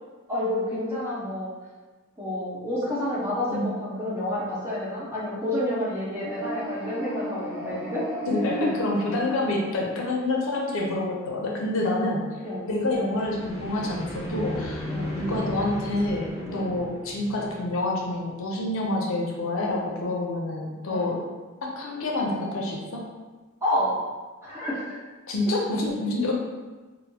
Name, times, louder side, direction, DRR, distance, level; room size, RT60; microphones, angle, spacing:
voice 1, 0.3-1.5 2.2-8.1 8.6-8.7 12.4-12.7 14.9-15.1 16.5-16.7 20.9-21.1 23.6-23.9 24.4-24.8, left 1 dB, 15° right, -9 dB, 1.0 m, -29 dB
sound 1, 6.1-10.4 13.0-18.0, equal, 30° left, 0.8 m, -35 dB
voice 2, 8.3-12.3 12.7-14.9 15.1-21.3 21.6-23.1 25.3-26.3, left 2 dB, 65° left, -1 dB, 0.5 m, -27 dB
4.1 x 2.0 x 2.7 m, 1.3 s
head